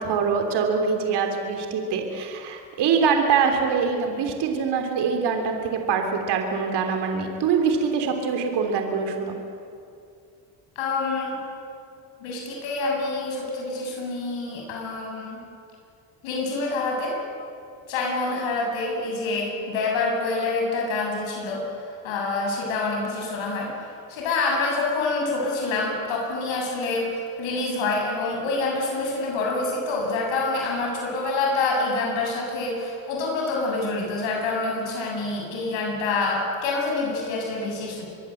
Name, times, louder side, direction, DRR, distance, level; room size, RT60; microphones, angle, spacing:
voice 1, 0.0-9.4, right 5 dB, 60° right, 4 dB, 3.4 m, -24 dB
voice 2, 10.8-11.4 12.2-15.4 16.2-17.2 17.9-21.7 22.0-23.7 24.1-38.1, left 3 dB, 80° left, 0 dB, 7.5 m, -26 dB
25.0 x 22.5 x 7.9 m, 2.5 s
cardioid pair, 125°, 45 cm